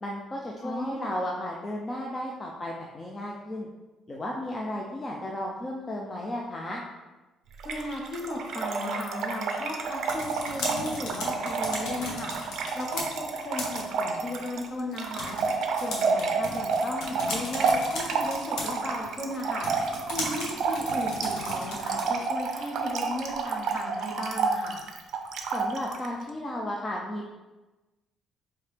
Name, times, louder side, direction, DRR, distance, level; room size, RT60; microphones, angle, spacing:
voice 1, 0.0-3.7 4.1-6.8 25.5-27.3, left 1 dB, 20° left, -2 dB, 0.3 m, -34 dB
voice 2, 0.6-1.0 7.6-12.4 12.8-15.4 15.7-19.7 20.1-24.8, left 1 dB, 35° left, 0 dB, 0.8 m, -36 dB
Trickle dribble / Fill (with liquid), 7.6-26.1, right 4 dB, 55° right, 0.4 m, -30 dB
sound 1, 9.8-22.3, left 2 dB, 75° left, 0.9 m, -38 dB
4.4 x 2.8 x 3.3 m, 1.1 s
cardioid pair, 170°, 0 cm